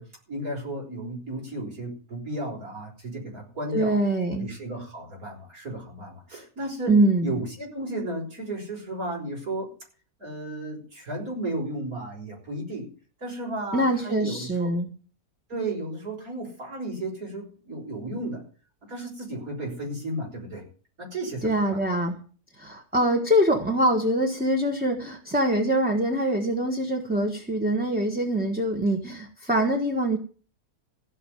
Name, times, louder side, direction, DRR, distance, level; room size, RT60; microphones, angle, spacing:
voice 1, 0.0-4.0 4.4-7.0 7.2-9.7 10.2-12.9 13.2-14.7 15.5-18.4 18.8-20.6 21.0-21.8, right 1 dB, 65° right, -1 dB, 5.8 m, -34 dB
voice 2, 3.7-4.5 6.9-7.3 13.7-14.9 21.4-22.2 22.6-30.2, right 1 dB, 5° right, 1 dB, 1.5 m, -24 dB
16.0 x 5.8 x 9.4 m, 0.40 s
omnidirectional pair, 1.7 m